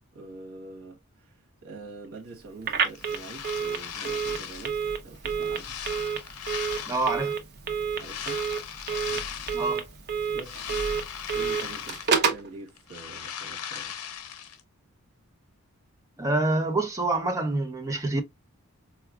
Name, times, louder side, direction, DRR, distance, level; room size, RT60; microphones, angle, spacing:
voice 1, 0.1-4.8 5.0-5.8 8.0-8.4 10.3-10.7 11.3-13.9, right 3 dB, 75° right, 1.0 m, -45 dB
Telephone, 2.6-12.5, right 6 dB, 45° right, 0.7 m, -30 dB
sound 1, 2.8-4.8 5.3-7.3 7.9-9.8 10.2-12.4 12.7-14.6, left 9 dB, 90° left, 0.7 m, -38 dB
voice 2, 6.9-7.3 9.5-9.8 16.2-18.2, right 2 dB, 15° right, 0.7 m, -26 dB
4.6 x 2.4 x 2.3 m
head